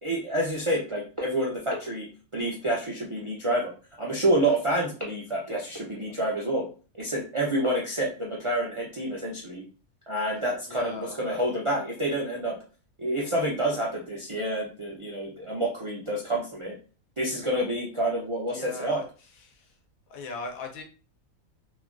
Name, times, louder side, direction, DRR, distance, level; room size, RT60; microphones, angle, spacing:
voice 1, 0.0-2.1 2.3-3.7 4.0-6.7 7.0-9.6 10.1-12.6 13.0-16.7 17.2-19.0, right 1 dB, 55° right, -3 dB, 0.3 m, -28 dB
voice 2, 10.7-11.2 18.5-19.7 20.1-20.8, left 3 dB, 85° left, 4 dB, 1.1 m, -39 dB
3.1 x 2.3 x 2.4 m, 0.36 s
omnidirectional pair, 1.4 m